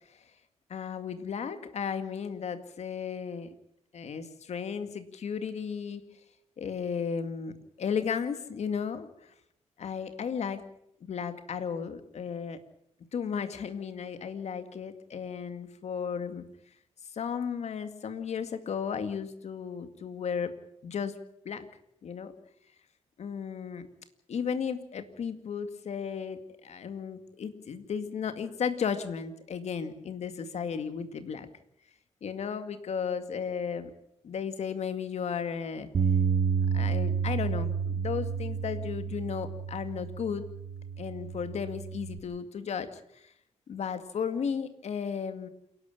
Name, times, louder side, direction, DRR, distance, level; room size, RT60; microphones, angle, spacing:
voice 1, 0.7-3.6 3.9-6.1 6.6-9.3 9.8-10.7 11.0-12.6 13.1-16.5 17.1-20.5 20.8-21.2 21.4-21.7 22.0-22.3 23.2-23.9 24.3-31.5 32.2-33.9 34.2-35.9 36.7-40.5 41.0-43.3 43.7-45.5, left 6 dB, 65° left, 10 dB, 2.2 m, -34 dB
Bass guitar, 35.9-42.2, right 6 dB, 50° right, 2.0 m, -30 dB
28.0 x 11.5 x 9.0 m, 0.74 s
cardioid pair, 100°, 12 cm